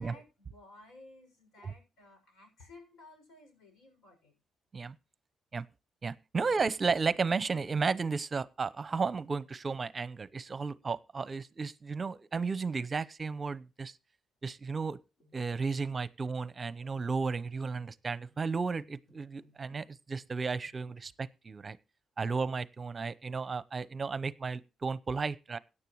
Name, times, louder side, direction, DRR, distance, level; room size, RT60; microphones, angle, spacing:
voice 1, 0.0-4.4, left 2 dB, 80° left, 6.5 m, -56 dB
voice 2, 6.0-13.9 14.4-15.0 15.3-21.8 22.2-25.6, right 4 dB, 35° right, 0.7 m, -33 dB
sound 1, 15.2-19.9 20.1-21.0, left 2 dB, 50° left, 4.8 m, -66 dB
17.0 x 9.9 x 3.1 m
cardioid pair, 90°, 0 cm